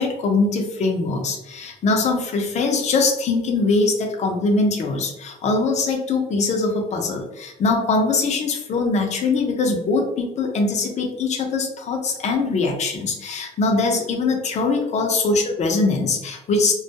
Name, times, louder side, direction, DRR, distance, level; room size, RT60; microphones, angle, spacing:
voice 1, 0.0-16.7, left 3 dB, 45° left, 2 dB, 0.5 m, -22 dB
2.2 x 2.2 x 2.7 m, 0.89 s
cardioid pair, 110°, 17 cm